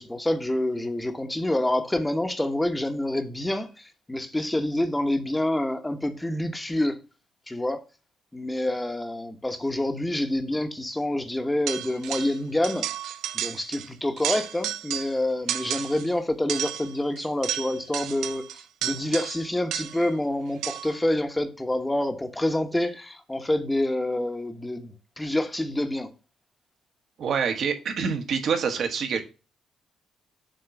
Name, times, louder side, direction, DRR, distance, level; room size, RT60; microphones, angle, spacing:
voice 1, 0.0-7.0 7.5-7.8 8.3-26.1, left 1 dB, 10° left, 1.1 m, -27 dB
sound 1, 11.7-12.4 12.6-13.9 14.2-15.2 15.5-16.1 16.5-20.1 20.6-21.0, right 11 dB, 85° right, 0.5 m, -32 dB
voice 2, 27.2-29.2, right 6 dB, 65° right, 1.5 m, -26 dB
7.6 x 3.0 x 5.9 m
cardioid pair, 90°, 0 cm